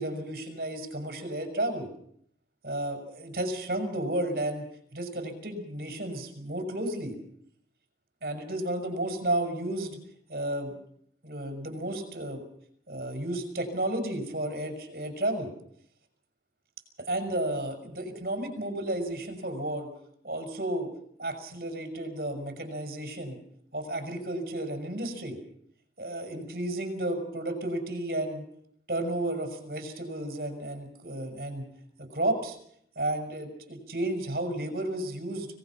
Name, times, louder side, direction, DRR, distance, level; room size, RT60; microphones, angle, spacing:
voice 1, 0.0-1.9 2.6-4.6 4.9-7.2 8.2-10.0 10.3-10.7 11.2-12.4 12.9-15.5 17.0-19.9 20.2-20.9 21.2-23.4 23.7-25.4 26.0-28.4 28.9-31.7 32.0-32.6 33.0-35.5, right 1 dB, 60° right, 5 dB, 5.9 m, -32 dB
25.5 x 19.0 x 5.9 m, 0.66 s
head